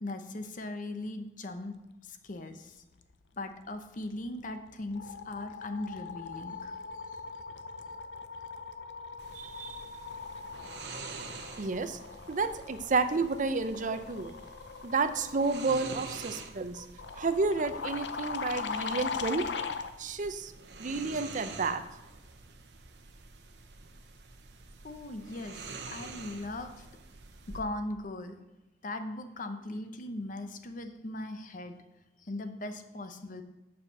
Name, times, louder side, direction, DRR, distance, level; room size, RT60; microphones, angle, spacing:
voice 1, 0.0-2.8 3.4-6.7 15.8-16.0 24.8-26.9 27.5-28.3 28.8-31.8 32.2-33.4, left 2 dB, 50° left, 8 dB, 0.8 m, -39 dB
sound 1, 4.1-4.4 4.7-19.9, left 5 dB, 80° left, 0.6 m, -40 dB
sound 2, 9.2-27.6, right 4 dB, 75° right, 0.9 m, -47 dB
voice 2, 9.3-9.9 11.6-12.0 12.3-14.3 14.8-16.8 17.1-19.5 20.0-20.5 20.8-21.8, right 4 dB, 45° right, 11 dB, 0.6 m, -31 dB
7.6 x 5.8 x 6.4 m, 1.0 s
head